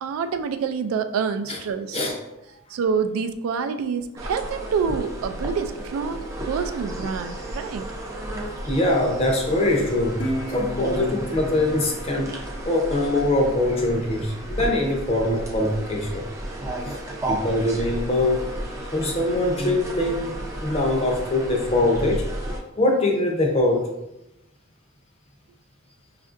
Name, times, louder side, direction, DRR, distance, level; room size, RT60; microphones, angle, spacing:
voice 1, 0.0-2.0 2.7-7.8, right 6 dB, 80° right, 10 dB, 0.3 m, -27 dB
sound 1, 4.2-22.6, right 1 dB, 15° right, 0.4 m, -33 dB
voice 2, 8.7-16.3 16.9-17.0 17.3-18.4 18.9-20.4 20.6-22.3 22.8-23.9, left 1 dB, 30° left, 1 dB, 0.6 m, -23 dB
Guitar, 10.2-13.4, right 1 dB, 80° left, 0.9 m, -34 dB
5.1 x 2.5 x 2.5 m, 0.91 s
head